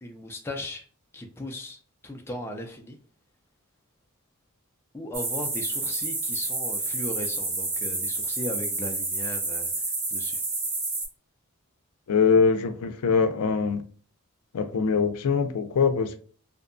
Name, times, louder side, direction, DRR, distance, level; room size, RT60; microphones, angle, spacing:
voice 1, 0.0-0.9 1.1-3.0 4.9-10.4, left 1 dB, 10° left, 3 dB, 0.3 m, -37 dB
sound 1, 5.1-11.1, right 3 dB, 50° right, 1.1 m, -29 dB
voice 2, 12.1-13.8 14.5-16.2, left 5 dB, 90° left, 9 dB, 0.4 m, -23 dB
2.6 x 2.2 x 2.5 m, 0.42 s
head